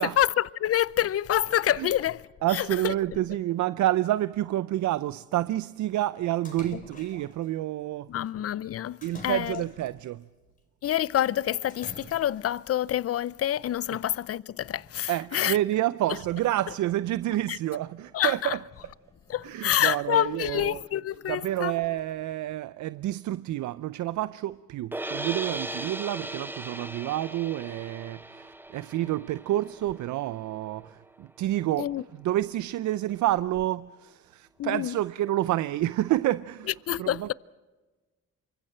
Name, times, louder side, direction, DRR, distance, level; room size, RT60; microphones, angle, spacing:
voice 1, 0.0-2.9 6.7-6.8 8.1-9.6 10.8-15.6 16.1-16.2 17.5-17.6 18.1-18.6 19.3-21.8 31.8-32.0 34.6-35.0 36.9-37.3, left 11 dB, 50° left, 0.6 m, -27 dB
voice 2, 2.4-8.1 9.0-10.2 15.1-18.6 19.4-20.8 21.3-31.9 32.2-36.7 37.0-37.3, right 14 dB, 75° right, 0.6 m, -29 dB
Splash splatter, 6.4-7.4 9.0-10.1 11.7-12.5, left 2 dB, 25° left, 4.6 m, -46 dB
sound 1, 14.8-19.9, left 1 dB, 10° left, 5.9 m, -62 dB
sound 2, 24.9-31.1, right 2 dB, 5° right, 0.7 m, -38 dB
27.5 x 25.0 x 4.4 m
cardioid pair, 90°, 30 cm